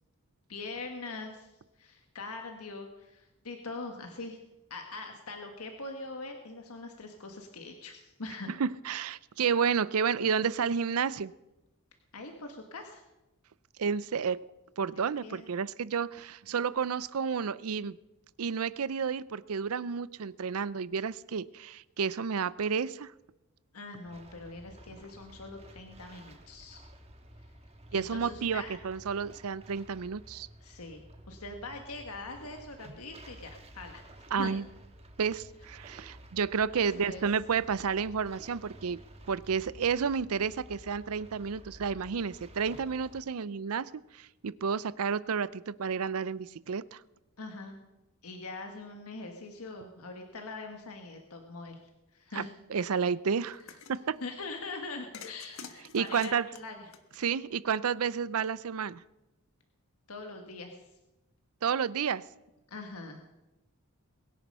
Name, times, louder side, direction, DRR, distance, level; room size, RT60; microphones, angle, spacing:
voice 1, 0.5-4.4 4.7-8.5 12.1-13.0 14.8-15.5 23.7-26.8 27.9-28.8 30.6-34.0 34.3-34.5 36.7-37.2 47.4-47.8 48.2-51.8 52.1-52.5 54.2-56.9 60.1-60.9 62.7-63.2, left 3 dB, 85° left, 4 dB, 1.6 m, -43 dB
voice 2, 8.6-11.3 13.8-14.4 14.8-18.0 18.4-23.1 27.9-30.5 34.3-34.6 35.2-39.0 39.3-47.0 52.3-52.4 52.7-53.6 53.9-54.2 55.9-56.5 57.2-59.0 61.6-62.2, right 6 dB, 80° right, 19 dB, 0.5 m, -31 dB
sound 1, 24.0-43.2, right 1 dB, 30° right, 1.5 m, -52 dB
sound 2, 53.5-54.0 55.1-57.6, left 6 dB, 65° left, 1.3 m, -48 dB
22.0 x 10.5 x 5.5 m, 0.98 s
head